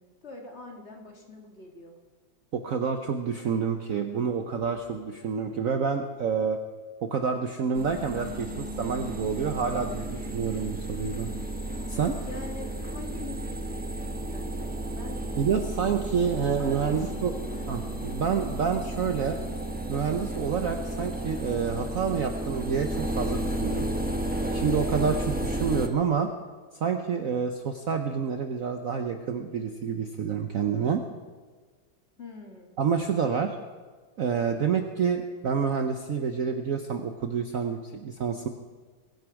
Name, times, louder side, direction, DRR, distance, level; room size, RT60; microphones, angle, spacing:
voice 1, 0.0-2.0 11.7-11.9 12.2-15.3 16.6-17.7 24.7-25.0 32.2-32.8, left 3 dB, 35° left, 1 dB, 1.9 m, -44 dB
voice 2, 2.5-6.6 7.0-11.3 11.9-12.2 15.4-17.3 17.7-19.4 19.9-23.9 24.5-26.3 26.7-31.0 32.8-33.6 34.2-38.5, right 6 dB, 60° right, 5 dB, 0.9 m, -28 dB
sound 1, 7.7-25.9, right 1 dB, 10° right, 0.4 m, -33 dB
22.0 x 9.5 x 4.8 m, 1.4 s
omnidirectional pair, 2.1 m